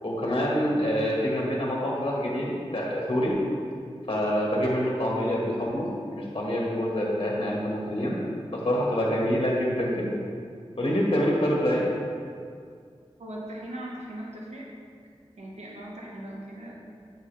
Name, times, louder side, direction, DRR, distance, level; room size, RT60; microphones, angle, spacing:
voice 1, 0.0-3.4 4.1-5.9 6.1-8.1 8.5-10.2 10.8-11.9, equal, 55° left, -4 dB, 1.7 m, -26 dB
voice 2, 13.2-14.7 15.4-16.8, right 1 dB, 90° right, -3 dB, 1.3 m, -39 dB
8.6 x 6.3 x 3.4 m, 2.2 s
wide cardioid pair, 50°, 11 cm